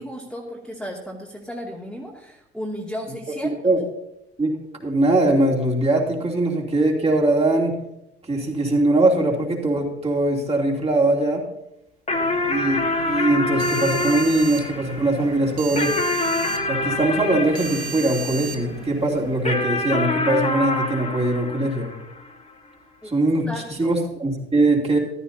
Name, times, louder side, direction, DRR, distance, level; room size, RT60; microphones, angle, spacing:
voice 1, 0.0-3.7 23.0-23.1 23.5-24.0, equal, 5° left, -5 dB, 2.5 m, -34 dB
voice 2, 4.4-7.7 8.3-11.4 12.5-15.9 16.7-21.9 23.0-25.0, right 2 dB, 20° right, -2 dB, 3.0 m, -21 dB
sound 1, 12.1-18.8 19.5-22.3, left 2 dB, 20° left, 2.2 m, -26 dB
sound 2, 12.1-19.4, right 5 dB, 85° right, 0.9 m, -35 dB
15.0 x 13.0 x 2.8 m, 0.83 s
figure-of-eight pair, 65°, 33 cm